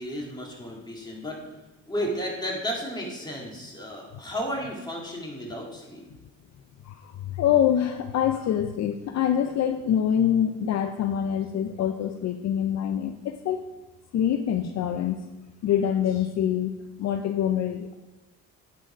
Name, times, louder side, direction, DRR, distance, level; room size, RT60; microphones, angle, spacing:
voice 1, 0.0-1.4 1.9-6.0, equal, 15° left, -2 dB, 2.2 m, -33 dB
voice 2, 6.8-13.6 14.1-15.2 15.6-17.9, left 9 dB, 60° left, 7 dB, 0.5 m, -25 dB
10.0 x 4.1 x 5.1 m, 1.1 s
cardioid pair, 90°, 30 cm